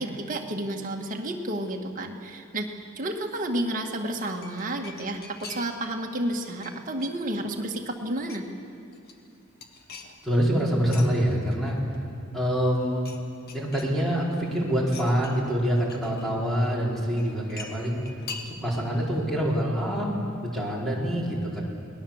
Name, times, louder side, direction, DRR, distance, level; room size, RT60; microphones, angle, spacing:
voice 1, 0.0-8.4, right 1 dB, 40° right, 1 dB, 1.9 m, -31 dB
sound 1, 4.1-5.9 6.2-7.6 8.0-8.6 8.9-11.1 11.5-12.4 12.6-13.2 13.5-14.4 14.8-16.3 17.2-18.9 19.2-19.3, left 4 dB, 45° left, 1.9 m, -44 dB
voice 2, 10.2-11.8 12.3-13.0 13.5-18.0 18.5-20.1 20.5-21.6, equal, ahead, -4 dB, 4.4 m, -25 dB
29.0 x 20.0 x 7.3 m, 2.6 s
head